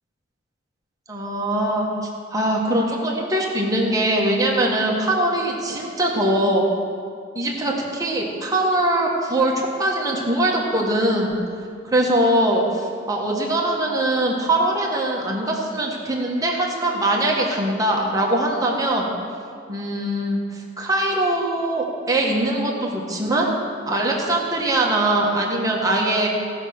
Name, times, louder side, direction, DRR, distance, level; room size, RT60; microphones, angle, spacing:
voice 1, 1.1-1.9 2.3-6.7 7.3-11.3 11.8-19.1 19.7-23.5 23.8-26.3, right 1 dB, 20° right, -1 dB, 1.4 m, -22 dB
16.5 x 5.7 x 6.5 m, 2.3 s
head